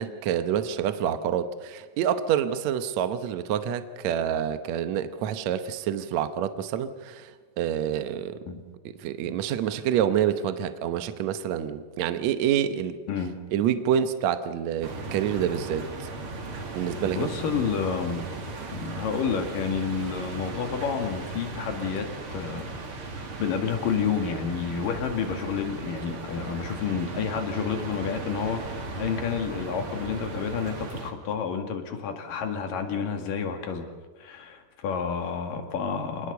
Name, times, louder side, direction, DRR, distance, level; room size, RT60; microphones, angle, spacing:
voice 1, 0.0-8.4 8.9-13.0 13.5-16.1 16.8-17.3, right 9 dB, 65° right, 10 dB, 1.9 m, -27 dB
sound 1, 14.8-31.1, right 3 dB, 40° right, 2.9 m, -37 dB
voice 2, 17.1-18.3 18.7-22.8 23.1-33.9 34.2-36.3, left 6 dB, 75° left, 5 dB, 3.7 m, -30 dB
27.0 x 20.0 x 6.8 m, 1.4 s
omnidirectional pair, 4.0 m